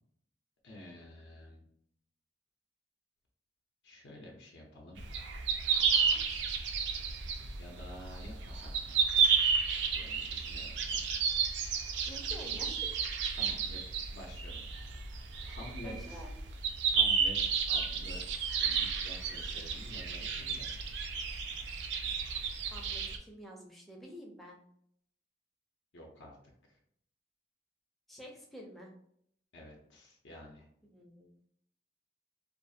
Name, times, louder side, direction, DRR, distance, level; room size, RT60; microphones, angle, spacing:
voice 1, 0.6-1.6 3.8-5.0 7.6-9.0 9.9-11.0 12.4-12.7 13.4-13.8 14.1-14.6 15.5-16.3 16.9-18.3 18.6-20.8 25.9-26.4 26.7-26.8 29.5-30.7, left 1 dB, 70° left, -1 dB, 0.5 m, -50 dB
sound 1, 5.0-23.2, right 6 dB, 70° right, 0.4 m, -32 dB
voice 2, 12.1-12.9 15.8-16.3 22.7-24.6 28.1-28.9 30.8-31.3, equal, ahead, -1 dB, 0.4 m, -49 dB
2.5 x 2.4 x 2.6 m, 0.68 s
head